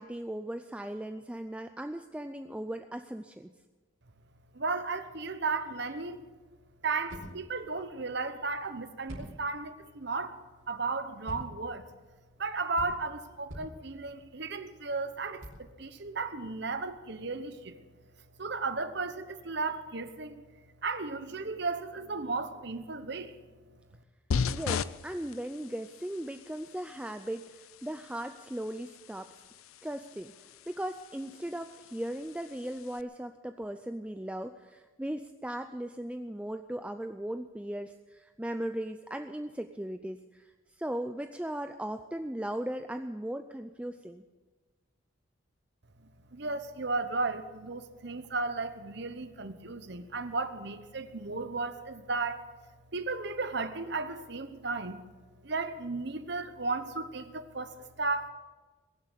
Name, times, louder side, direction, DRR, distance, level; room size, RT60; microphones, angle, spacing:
voice 1, 0.0-3.5 24.5-29.3 29.8-30.3 30.7-44.2, right 1 dB, 5° right, 0.4 m, -38 dB
voice 2, 4.5-6.2 6.8-10.4 10.7-11.9 12.4-17.8 18.4-20.4 20.8-23.3 46.3-52.5 52.9-55.0 55.4-58.3, right 3 dB, 55° right, 1.0 m, -34 dB
sound 1, 6.3-17.0, equal, 85° right, 4.5 m, -49 dB
sound 2, 24.3-33.0, left 6 dB, 90° left, 0.5 m, -39 dB
21.0 x 7.7 x 8.2 m
head